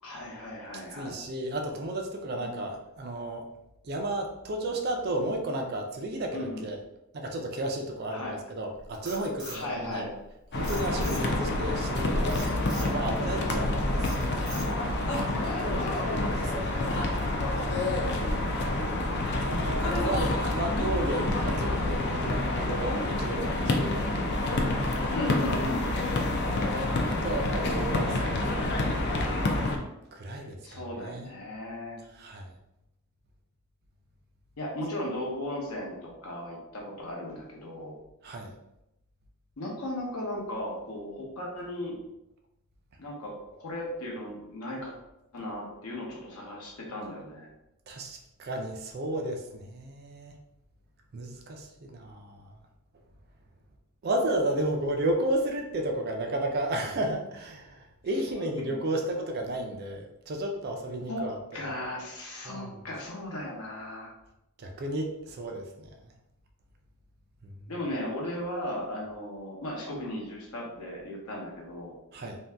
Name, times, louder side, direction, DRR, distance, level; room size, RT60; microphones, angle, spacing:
voice 1, 0.0-1.2 6.3-6.6 8.1-8.4 9.5-10.1 11.0-11.5 15.1-17.7 25.1-25.8 30.3-32.0 34.6-38.0 39.6-42.0 43.0-44.9 45.3-47.5 61.1-64.1 67.7-71.9, left 1 dB, 85° left, -1 dB, 0.8 m, -37 dB
voice 2, 1.0-3.5 3.8-6.8 7.1-10.0 10.5-14.3 16.3-16.9 19.8-24.0 26.1-26.7 27.0-28.7 30.1-31.3 32.2-32.5 38.2-38.5 47.9-50.3 51.1-52.5 54.0-61.4 61.6-61.7 62.5-62.8 64.6-65.9 67.4-67.6 72.1-72.4, right 1 dB, 45° right, 2 dB, 0.4 m, -33 dB
Frog, 8.7-10.3 10.6-11.5 12.3-12.9 13.4-13.7 14.0-14.9, right 1 dB, 5° right, 1.1 m, -42 dB
sound 1, 10.5-29.8, left 2 dB, 50° left, 0.4 m, -28 dB
2.6 x 2.2 x 3.3 m, 0.88 s
head